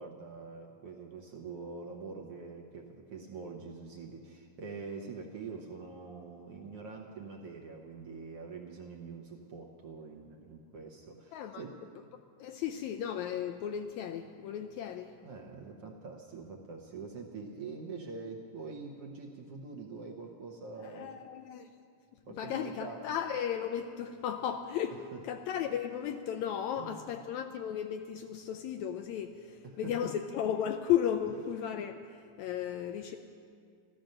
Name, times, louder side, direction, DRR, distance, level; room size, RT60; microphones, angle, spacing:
voice 1, 0.0-11.8 15.2-21.2 22.3-23.0 25.1-25.2 26.7-27.1 29.6-30.1, right 4 dB, 65° right, 0 dB, 1.6 m, -45 dB
voice 2, 11.3-11.6 12.4-15.1 20.8-21.7 22.4-33.2, left 9 dB, 80° left, 7 dB, 1.7 m, -35 dB
14.0 x 13.5 x 6.5 m, 2.2 s
omnidirectional pair, 3.7 m